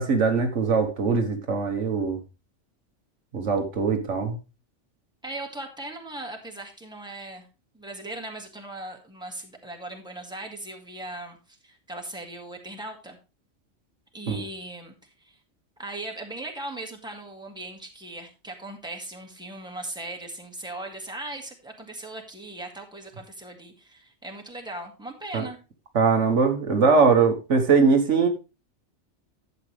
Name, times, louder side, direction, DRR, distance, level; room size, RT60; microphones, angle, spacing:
voice 1, 0.0-2.2 3.3-4.4 14.3-14.4 25.3-25.4 26.0-28.3, right 4 dB, 90° right, 1.6 m, -21 dB
voice 2, 5.2-7.5 7.7-13.2 14.1-15.4 15.8-25.6, right 2 dB, 5° right, 1.7 m, -38 dB
11.5 x 7.9 x 3.3 m
omnidirectional pair, 1.2 m